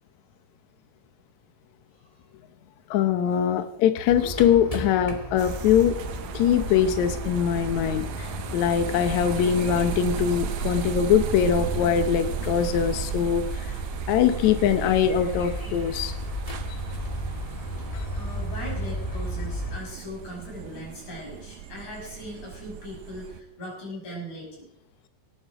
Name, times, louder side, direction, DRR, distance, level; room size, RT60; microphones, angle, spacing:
voice 1, 2.9-6.0 6.3-13.8 14.1-16.2 16.7-16.8 17.9-18.1, left 9 dB, 75° left, 9 dB, 1.7 m, -22 dB
sound 1, 4.1-19.8, left 1 dB, 20° left, 1.1 m, -34 dB
sound 2, 5.4-23.4, right 11 dB, 70° right, 1.9 m, -36 dB
voice 2, 18.1-24.7, equal, 50° left, -2 dB, 7.4 m, -39 dB
18.0 x 14.0 x 4.9 m, 0.80 s
omnidirectional pair, 4.3 m